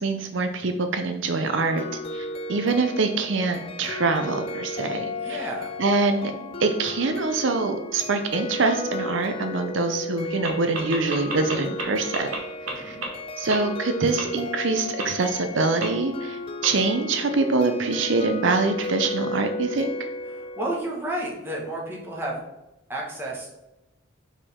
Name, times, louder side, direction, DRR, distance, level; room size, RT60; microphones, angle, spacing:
voice 1, 0.0-1.8 2.1-5.5 5.8-6.3 6.6-12.3 12.8-13.0 13.4-19.9, right 3 dB, 65° right, 7 dB, 0.5 m, -24 dB
sound 1, 1.5-20.6, left 2 dB, 25° left, 0.4 m, -34 dB
voice 2, 5.2-5.8 12.7-13.0 20.3-22.4 22.9-23.5, right 1 dB, 10° right, -3 dB, 1.4 m, -32 dB
sound 2, 10.4-10.5 10.7-11.8 12.1-12.4 12.7-12.8 13.0-13.1 13.5-13.6 14.2-14.3 15.0-15.1 15.8-15.9 16.6-16.7, right 3 dB, 90° right, 1.7 m, -29 dB
6.6 x 5.0 x 3.6 m, 0.97 s
head